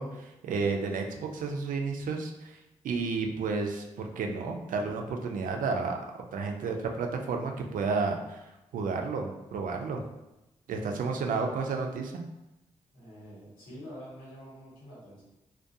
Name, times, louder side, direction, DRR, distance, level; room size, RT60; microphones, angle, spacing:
voice 1, 0.0-2.6 2.8-6.0 6.3-8.4 8.7-10.0 10.7-12.2, right 4 dB, 70° right, 3 dB, 0.4 m, -31 dB
voice 2, 12.9-15.2, equal, 85° left, -8 dB, 1.2 m, -46 dB
2.4 x 2.2 x 2.6 m, 0.95 s
supercardioid pair, 40°, 14 cm